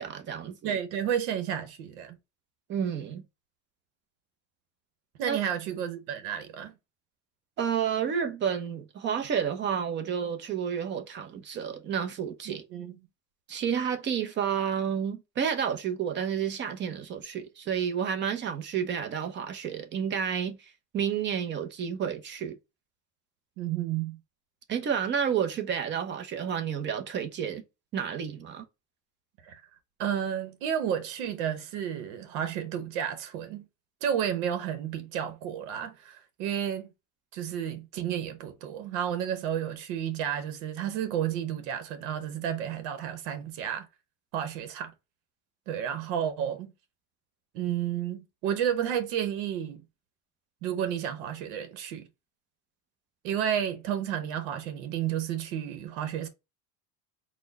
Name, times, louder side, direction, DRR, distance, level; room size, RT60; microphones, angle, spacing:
voice 1, 0.0-0.7 2.7-3.2 5.2-5.4 7.6-12.6 13.5-22.5 24.7-27.6 27.9-28.6, right 8 dB, 30° right, 0.7 m, -30 dB
voice 2, 0.6-2.2 5.2-6.7 12.5-13.0 23.6-24.2 29.4-29.6 30.0-33.6 34.0-36.9 37.3-43.9 44.3-44.9 45.7-46.7 47.5-49.8 50.6-52.1 53.2-56.3, right 9 dB, 85° right, 1.0 m, -31 dB
4.3 x 2.2 x 3.9 m
cardioid pair, 155°, 34 cm